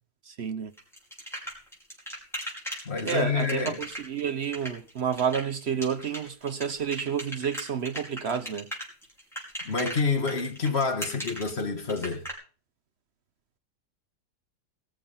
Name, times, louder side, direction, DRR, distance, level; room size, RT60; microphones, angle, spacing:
voice 1, 0.2-0.7 3.0-8.7, right 7 dB, 55° right, 0.8 m, -30 dB
sound 1, 0.8-12.3, equal, ahead, 5.1 m, -37 dB
voice 2, 2.9-3.8 9.7-12.2, left 4 dB, 40° left, 1.8 m, -28 dB
20.0 x 7.2 x 5.6 m
omnidirectional pair, 1.8 m